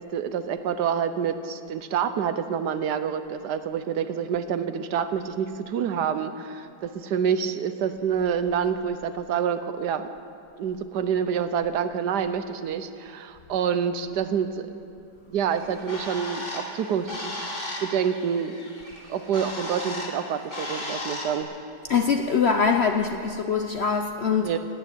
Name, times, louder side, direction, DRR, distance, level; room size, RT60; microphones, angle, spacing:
voice 1, 0.1-10.1 10.6-14.7 15.3-17.3 17.8-18.6 19.1-21.5 24.4-24.6, right 7 dB, 75° right, 10 dB, 1.4 m, -27 dB
Bird, 15.5-21.4, left 1 dB, 25° left, 2.8 m, -36 dB
voice 2, 21.9-24.5, left 6 dB, 55° left, 4 dB, 0.7 m, -23 dB
17.5 x 9.1 x 9.0 m, 2.4 s
omnidirectional pair, 1.9 m